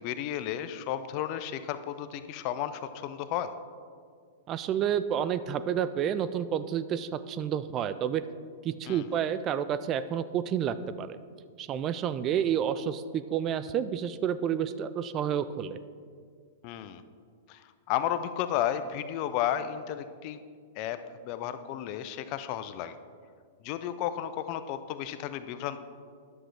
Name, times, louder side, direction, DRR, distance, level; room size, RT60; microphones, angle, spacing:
voice 1, 0.0-3.5 8.9-9.1 16.6-17.0 17.5-20.4 20.8-23.0 23.6-25.8, left 11 dB, 45° left, 11 dB, 0.5 m, -33 dB
voice 2, 4.5-8.2 8.6-11.2 11.6-15.8, right 9 dB, 35° right, 13 dB, 0.4 m, -30 dB
10.5 x 7.5 x 3.3 m, 2.1 s
hypercardioid pair, 110°, 0 cm